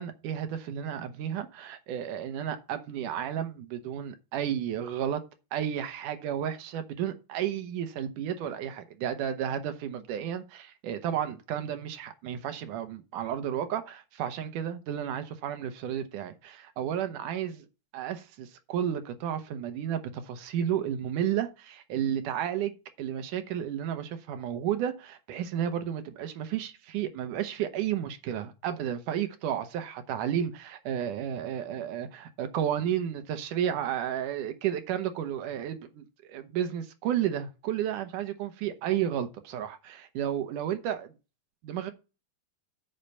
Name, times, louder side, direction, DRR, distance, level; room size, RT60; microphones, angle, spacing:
voice 1, 0.0-5.2 5.5-17.6 17.9-41.1 41.6-41.9, right 10 dB, 70° right, 2.3 m, -32 dB
8.7 x 5.8 x 5.4 m
omnidirectional pair, 4.1 m